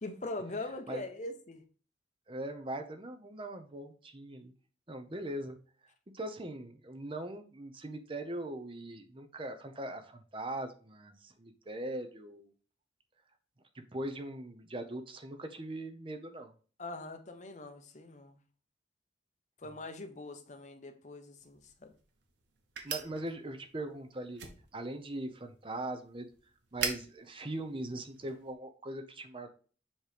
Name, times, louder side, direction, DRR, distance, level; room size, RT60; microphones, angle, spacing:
voice 1, 0.0-1.6 16.8-18.4 19.6-21.9, left 2 dB, 45° left, 0.8 m, -42 dB
voice 2, 2.3-4.5 4.9-5.6 6.1-12.5 13.7-16.5 22.8-24.4 24.7-26.3 26.7-29.5, right 1 dB, 30° right, 0.8 m, -40 dB
sound 1, 21.4-28.5, right 6 dB, 85° right, 1.2 m, -44 dB
7.2 x 3.1 x 5.0 m
head